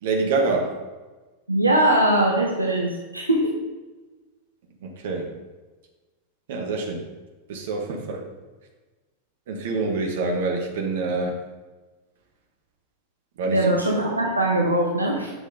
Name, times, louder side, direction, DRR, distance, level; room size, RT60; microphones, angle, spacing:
voice 1, 0.0-0.8 4.8-5.4 6.5-7.1 7.5-8.3 9.5-11.4 13.4-13.7, right 3 dB, 55° right, 2 dB, 1.4 m, -26 dB
voice 2, 1.5-3.6 13.5-15.3, right 1 dB, 85° right, -1 dB, 1.0 m, -21 dB
8.2 x 6.2 x 3.8 m, 1.2 s
figure-of-eight pair, 90°, 0 cm